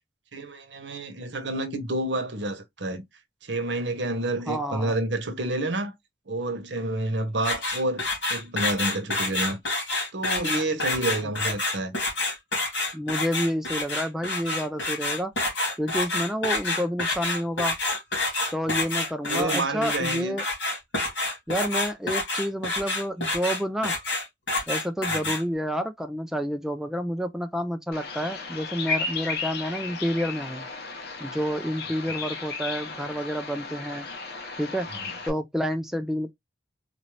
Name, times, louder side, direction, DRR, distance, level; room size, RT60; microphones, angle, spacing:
voice 1, 0.3-3.0 3.4-5.9 6.3-9.6 10.1-12.0 18.7-18.8 19.3-20.3 25.1-25.3 34.9-35.0, right 2 dB, 75° right, 1.0 m, -29 dB
voice 2, 4.5-4.9 12.9-15.3 15.8-17.7 18.5-20.4 21.5-23.9 24.7-30.7 31.2-34.1 34.6-34.9 35.3-36.3, equal, 5° right, 0.3 m, -29 dB
sound 1, 7.4-25.4, left 2 dB, 75° left, 2.4 m, -28 dB
Bird vocalization bird call bird song, 27.9-35.3, left 4 dB, 60° left, 0.9 m, -34 dB
4.0 x 2.6 x 3.1 m
head